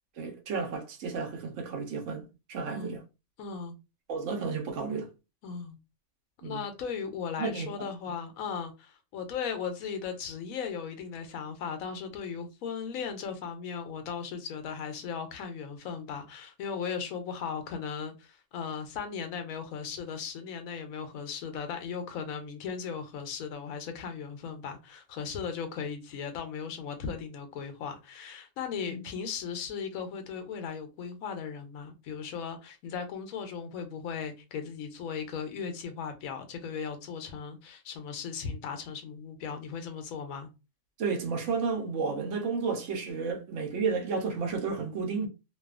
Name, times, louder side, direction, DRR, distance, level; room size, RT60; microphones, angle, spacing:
voice 1, 0.2-3.0 4.1-5.1 6.4-6.6 7.4-7.9 28.7-29.0 41.0-45.3, right 5 dB, 65° right, 1.0 m, -32 dB
voice 2, 2.6-3.0 3.4-3.8 5.4-5.8 6.4-40.5, left 6 dB, 90° left, 1.0 m, -37 dB
2.6 x 2.3 x 2.3 m
omnidirectional pair, 1.4 m